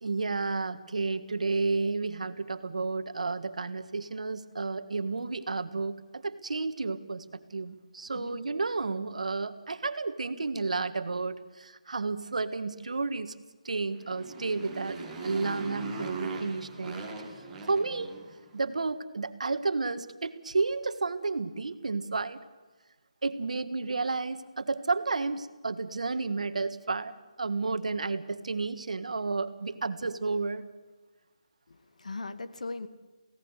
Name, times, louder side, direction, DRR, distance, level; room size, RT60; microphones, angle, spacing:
voice 1, 0.0-7.2 7.5-13.3 13.6-17.1 17.7-18.1 18.5-22.4 23.2-30.6, right 3 dB, 80° right, 11 dB, 1.6 m, -31 dB
Motorcycle, 13.9-18.5, right 3 dB, 10° right, 2.6 m, -39 dB
voice 2, 31.7-32.9, left 3 dB, 85° left, 11 dB, 1.9 m, -39 dB
24.0 x 17.5 x 8.2 m, 1.3 s
hypercardioid pair, 165°, 4 cm